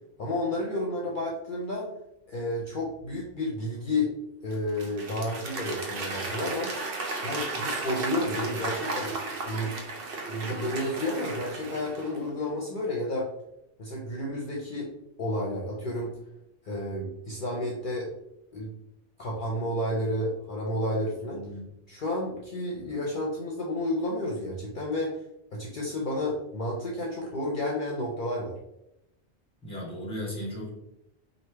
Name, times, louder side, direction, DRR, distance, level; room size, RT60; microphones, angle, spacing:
voice 1, 0.2-1.9 2.3-4.1 4.4-6.7 7.2-9.7 10.3-13.3 13.8-14.9 15.2-16.1 16.6-18.1 18.5-18.7 19.2-21.4 21.9-25.2 25.5-28.5, left 1 dB, 55° left, -2 dB, 0.7 m, -31 dB
Applause / Crowd, 4.5-12.3, right 3 dB, 60° right, 0.9 m, -34 dB
voice 2, 21.3-21.6 29.6-30.7, equal, 5° left, -3 dB, 1.1 m, -36 dB
3.1 x 2.6 x 4.5 m, 0.84 s
omnidirectional pair, 1.1 m